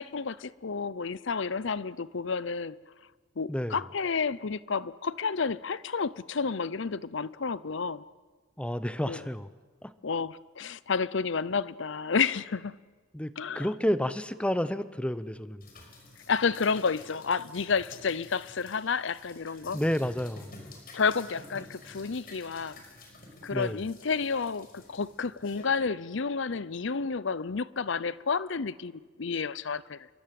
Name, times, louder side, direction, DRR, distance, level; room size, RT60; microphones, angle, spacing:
voice 1, 0.0-2.8 3.4-8.0 9.1-9.2 10.0-12.8 13.4-13.7 16.3-19.8 20.9-22.8 23.4-30.1, left 5 dB, 65° left, 0.7 m, -30 dB
voice 2, 3.5-3.8 8.6-9.5 9.8-9.9 13.1-15.7 19.7-20.6 23.5-23.8, equal, 5° left, 0.8 m, -30 dB
sound 1, 15.6-25.6, left 2 dB, 50° left, 5.3 m, -50 dB
28.0 x 23.0 x 7.7 m
head